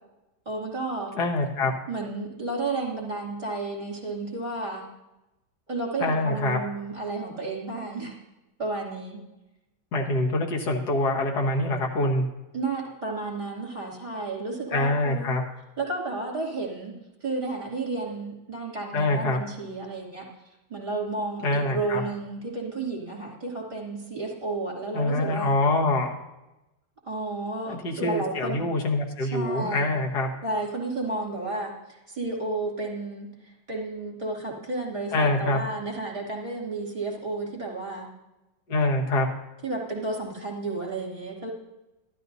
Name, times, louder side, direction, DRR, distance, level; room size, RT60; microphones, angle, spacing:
voice 1, 0.4-1.1 1.9-4.8 5.7-8.1 8.6-9.2 12.5-15.4 15.8-16.9 17.2-20.2 20.7-25.5 27.0-28.6 29.2-29.9 30.4-38.1 39.6-41.5, right 3 dB, 25° right, -3 dB, 2.7 m, -32 dB
voice 2, 1.2-1.7 6.0-6.6 9.9-12.3 14.7-15.4 18.9-19.4 21.4-22.0 24.9-26.1 27.7-30.3 35.1-35.6 38.7-39.3, left 2 dB, 60° left, 0 dB, 1.9 m, -25 dB
12.5 x 12.0 x 2.7 m, 0.97 s
omnidirectional pair, 2.0 m